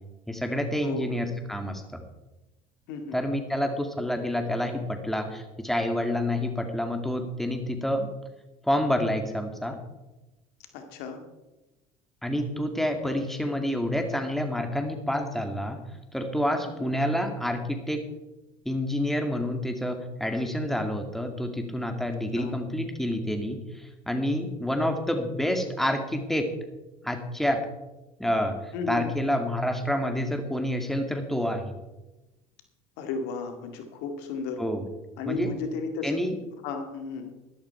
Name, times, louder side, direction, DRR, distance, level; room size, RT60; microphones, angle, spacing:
voice 1, 0.3-2.0 3.1-8.1 8.6-9.8 12.2-15.8 16.1-18.0 18.7-26.5 27.0-27.7 28.2-31.7 34.6-34.9 35.2-35.5 36.0-36.3, left 1 dB, ahead, 5 dB, 2.2 m, -28 dB
voice 2, 2.9-3.2 10.7-11.2 16.8-16.9 22.3-22.5 28.7-29.1 33.0-34.6 35.2-36.2 36.6-37.3, left 4 dB, 70° left, 6 dB, 2.0 m, -33 dB
12.5 x 12.0 x 4.5 m, 1.1 s
hypercardioid pair, 75°, 18 cm